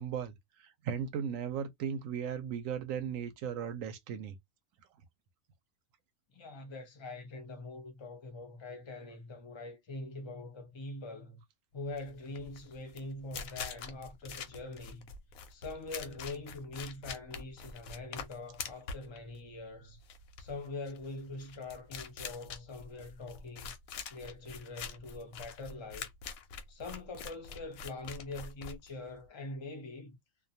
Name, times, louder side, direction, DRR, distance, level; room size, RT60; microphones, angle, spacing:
voice 1, 0.0-4.3, right 8 dB, 80° right, 1.0 m, -37 dB
voice 2, 6.3-11.4 11.7-15.1 15.5-20.0 20.4-23.7 24.1-26.1 26.7-30.1, left 2 dB, 30° left, 0.6 m, -43 dB
sound 1, 11.9-29.3, left 6 dB, 85° left, 1.0 m, -45 dB
2.5 x 2.2 x 2.7 m
omnidirectional pair, 1.4 m